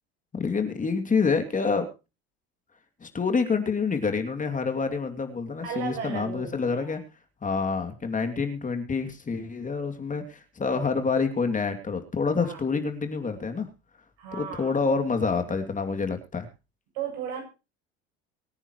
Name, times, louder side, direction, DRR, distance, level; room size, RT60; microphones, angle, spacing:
voice 1, 0.3-1.9 3.0-7.0 7.4-13.7 14.4-16.5, left 4 dB, 25° left, 6 dB, 2.7 m, -27 dB
voice 2, 5.6-7.0 12.4-12.6 14.2-14.8 16.9-17.4, right 7 dB, 75° right, 2 dB, 7.9 m, -35 dB
23.5 x 9.8 x 3.1 m, 0.30 s
hypercardioid pair, 85°, 31 cm